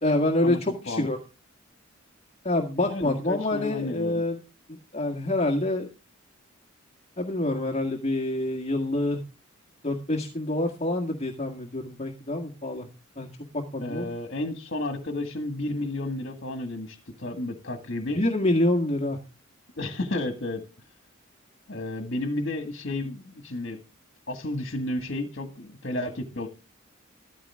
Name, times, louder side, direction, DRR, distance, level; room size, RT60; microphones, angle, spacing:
voice 1, 0.0-1.2 2.4-4.4 4.9-5.9 7.2-9.2 9.8-12.9 13.2-14.1 18.1-19.2, left 1 dB, 30° left, 2 dB, 1.8 m, -26 dB
voice 2, 2.9-4.2 13.8-18.2 19.8-20.7 21.7-23.8 24.3-26.5, left 1 dB, 55° left, 6 dB, 1.9 m, -32 dB
14.0 x 14.0 x 3.6 m, 0.31 s
head